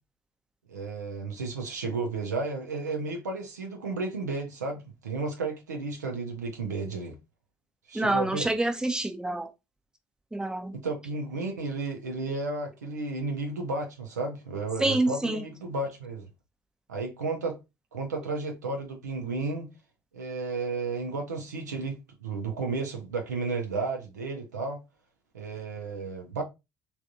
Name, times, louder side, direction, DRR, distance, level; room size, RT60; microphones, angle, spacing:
voice 1, 0.7-7.2 7.9-8.5 10.7-16.3 16.9-17.6 17.9-19.7 20.1-24.8 25.3-26.4, right 3 dB, 80° right, 0.5 m, -33 dB
voice 2, 7.9-9.5 10.3-10.7 14.8-15.4, right 2 dB, 10° right, 0.7 m, -27 dB
3.4 x 2.4 x 2.6 m
figure-of-eight pair, 55°, 9 cm